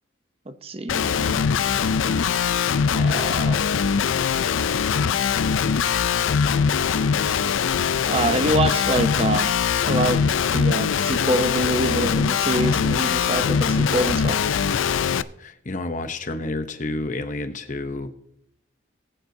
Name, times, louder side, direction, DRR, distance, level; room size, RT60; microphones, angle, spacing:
voice 1, 0.5-1.5 2.9-3.6 8.1-9.5 9.9-10.3 10.5-14.4, right 1 dB, 30° right, 0.6 m, -25 dB
Guitar, 0.9-15.2, left 6 dB, 80° left, 0.4 m, -22 dB
voice 2, 15.4-18.1, left 2 dB, 40° left, 0.8 m, -30 dB
19.5 x 9.2 x 2.7 m
head